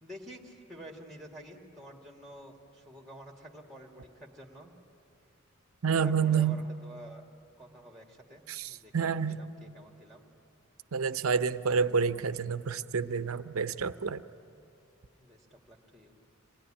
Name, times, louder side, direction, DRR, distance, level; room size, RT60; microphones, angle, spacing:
voice 1, 0.0-4.8 6.0-7.3 7.6-10.3 15.2-16.2, right 1 dB, ahead, 1 dB, 1.9 m, -49 dB
voice 2, 5.8-6.6 8.5-9.4 10.9-14.2, right 6 dB, 90° right, 12 dB, 0.7 m, -29 dB
26.5 x 20.0 x 9.9 m, 2.6 s
head